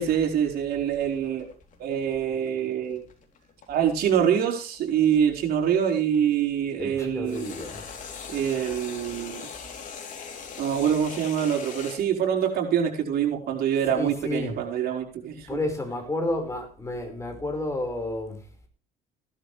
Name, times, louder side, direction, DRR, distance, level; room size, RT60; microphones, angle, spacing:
voice 1, 0.0-1.5 1.8-3.0 3.7-7.5 8.3-9.5 10.6-15.6, right 8 dB, 65° right, 4.7 m, -25 dB
sound 1, 1.0-6.2 7.2-12.0, left 6 dB, 50° left, 3.6 m, -41 dB
voice 2, 6.8-8.1 13.9-14.6 15.5-18.4, left 1 dB, 15° left, 5.2 m, -31 dB
16.5 x 12.0 x 3.4 m
cardioid pair, 110°, 17 cm